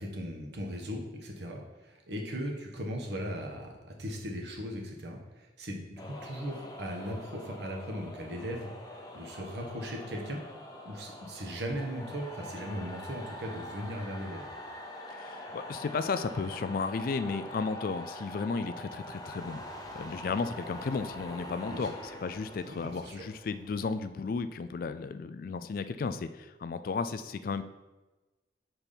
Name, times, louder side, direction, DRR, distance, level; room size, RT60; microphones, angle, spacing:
voice 1, 0.0-8.7 9.1-10.4 10.8-14.5 21.7-21.9 22.7-23.3, equal, 65° right, 1 dB, 1.3 m, -38 dB
sound 1, 6.0-24.5, left 1 dB, 20° left, 0.7 m, -44 dB
voice 2, 15.1-19.6 20.0-21.9 22.2-27.6, left 4 dB, 50° left, 11 dB, 0.3 m, -34 dB
5.6 x 4.5 x 5.1 m, 1.1 s
head